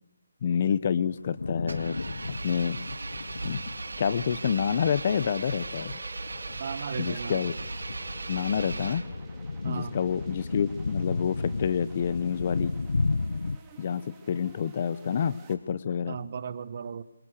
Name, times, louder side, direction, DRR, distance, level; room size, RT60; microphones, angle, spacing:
voice 1, 0.4-2.0 2.4-2.8 3.4-3.6 4.0-6.0 7.0-7.5 8.3-9.0 9.6-12.7 13.8-14.0 14.3-16.2, left 7 dB, 40° left, 16 dB, 1.0 m, -28 dB
sound 1, 1.1-13.6, left 3 dB, 80° left, 1.0 m, -34 dB
Engine, 1.6-9.4, right 3 dB, 85° right, 2.7 m, -38 dB
sound 2, 3.0-15.5, right 4 dB, 15° right, 3.6 m, -53 dB
voice 2, 6.5-7.5 9.6-10.0 16.1-17.0, right 6 dB, 45° right, 14 dB, 1.6 m, -36 dB
27.5 x 25.5 x 6.6 m, 0.74 s
figure-of-eight pair, 165°, 0 cm